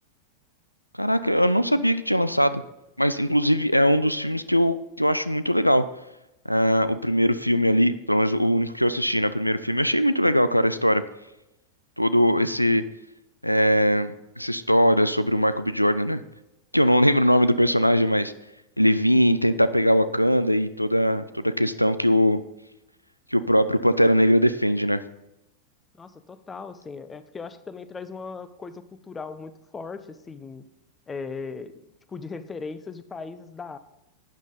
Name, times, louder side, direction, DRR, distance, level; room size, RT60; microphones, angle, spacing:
voice 1, 1.0-2.6 3.0-5.9 6.5-11.0 12.0-12.8 13.4-16.2 16.7-18.3 18.8-22.4 23.3-25.0, equal, 90° left, 14 dB, 0.4 m, -21 dB
voice 2, 25.9-30.6 31.1-31.8 32.1-33.8, left 4 dB, 15° left, 13 dB, 0.8 m, -38 dB
12.0 x 9.0 x 3.9 m, 0.92 s
figure-of-eight pair, 90°, 0 cm